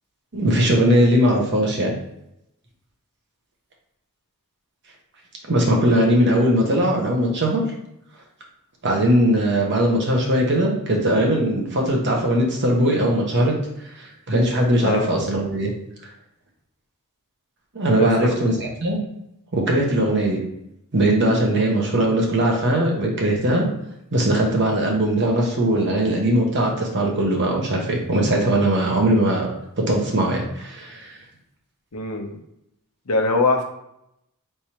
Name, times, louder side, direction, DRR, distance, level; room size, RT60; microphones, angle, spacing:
voice 1, 0.3-1.9 5.5-7.6 8.8-13.5 14.0-15.7 17.7-19.0 19.5-20.4 20.9-23.7 24.1-29.5 29.8-31.2, right 1 dB, 55° right, 0 dB, 1.0 m, -20 dB
voice 2, 14.6-15.1 18.0-18.1 31.9-32.4 33.1-33.6, left 2 dB, 80° left, 3 dB, 0.8 m, -22 dB
4.6 x 3.4 x 2.9 m, 0.81 s
head